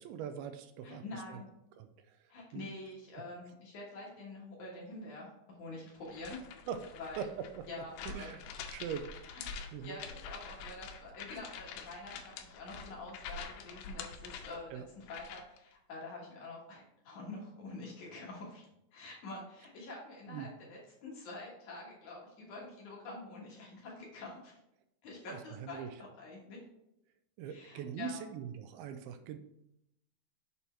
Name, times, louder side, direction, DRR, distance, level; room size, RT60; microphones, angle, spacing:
voice 1, 0.0-1.4 1.8-2.2 2.5-2.7 6.7-6.9 7.2-7.3 7.6-7.7 8.0-8.4 8.7-9.1 9.3-10.0 14.7-14.8 20.3-20.5 25.3-25.9 27.4-29.4, right 8 dB, 85° right, 8 dB, 2.4 m, -42 dB
voice 2, 0.8-1.5 2.3-5.3 5.6-6.4 7.0-7.3 7.7-8.3 9.3-9.4 9.8-18.7 18.9-24.5 25.0-26.6 27.5-28.2, left 2 dB, 60° left, -3 dB, 2.5 m, -46 dB
sound 1, 6.1-15.6, left 5 dB, 85° left, 2.6 m, -46 dB
6.9 x 4.3 x 4.4 m, 0.81 s
omnidirectional pair, 4.5 m